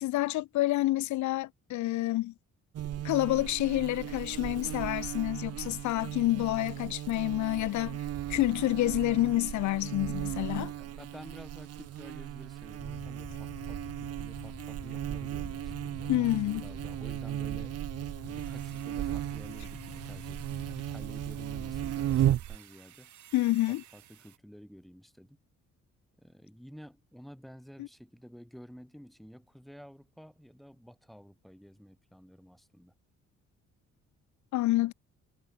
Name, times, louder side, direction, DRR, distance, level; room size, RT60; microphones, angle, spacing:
voice 1, 0.0-2.3 3.0-8.0 8.3-10.7 16.1-16.6 23.3-23.8 27.8-27.9 34.5-34.9, left 17 dB, 70° left, 0.5 m, -28 dB
Buzz, 2.7-22.6, right 12 dB, 55° right, 0.7 m, -36 dB
voice 2, 10.8-17.9 18.2-23.1 23.7-25.4 26.2-32.9, equal, ahead, 5.2 m, -51 dB
sound 1, 12.8-22.0, left 7 dB, 35° left, 1.0 m, -48 dB
sound 2, 18.2-24.4, right 11 dB, 70° right, 8.0 m, -55 dB
cardioid pair, 90°, 30 cm